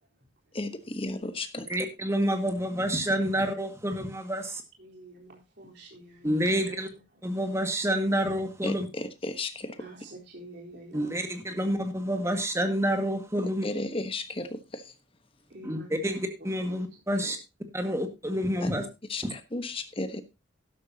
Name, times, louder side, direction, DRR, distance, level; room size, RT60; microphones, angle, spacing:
voice 1, 0.5-1.7 8.6-9.8 13.6-14.9 18.6-18.7 19.1-20.2, left 2 dB, 30° left, 9 dB, 1.2 m, -34 dB
voice 2, 1.7-4.6 6.2-6.9 7.2-8.9 10.9-13.7 15.6-17.4 17.7-18.9 19.2-19.3, equal, 15° right, 6 dB, 1.9 m, -28 dB
voice 3, 4.8-6.8 9.8-11.2 11.5-11.8 12.1-12.3 15.5-16.2 16.6-16.8 17.2-17.3 17.8-17.9, right 2 dB, 60° right, -2 dB, 4.0 m, -47 dB
12.5 x 11.5 x 2.8 m, 0.25 s
head